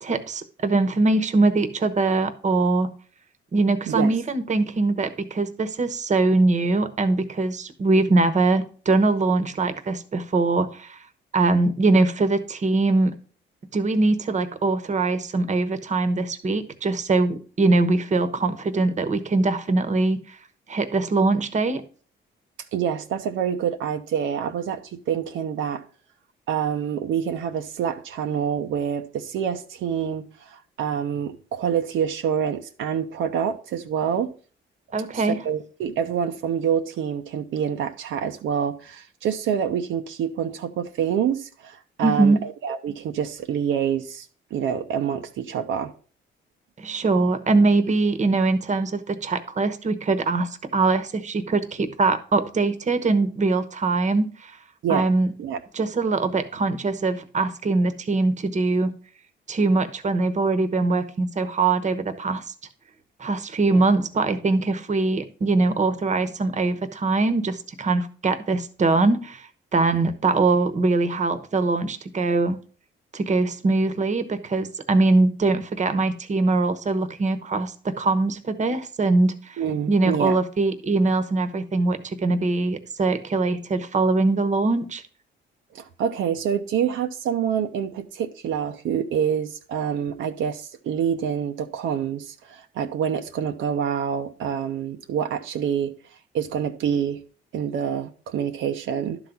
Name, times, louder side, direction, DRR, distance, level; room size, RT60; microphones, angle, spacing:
voice 1, 0.0-2.9 3.5-11.0 11.3-13.1 13.7-20.4 20.7-21.8 34.9-35.4 42.0-42.4 46.8-54.6 54.9-55.3 55.7-58.9 59.5-62.5 63.2-72.6 73.1-79.6 79.9-85.0, right 3 dB, 35° right, 1.0 m, -22 dB
voice 2, 22.7-25.8 26.5-34.3 35.1-44.3 44.5-45.9 54.8-55.1 55.4-55.6 79.6-80.4 85.7-95.9 96.3-97.2 97.5-99.2, right 8 dB, 80° right, 0.8 m, -26 dB
11.5 x 4.0 x 5.8 m
cardioid pair, 90°, 20 cm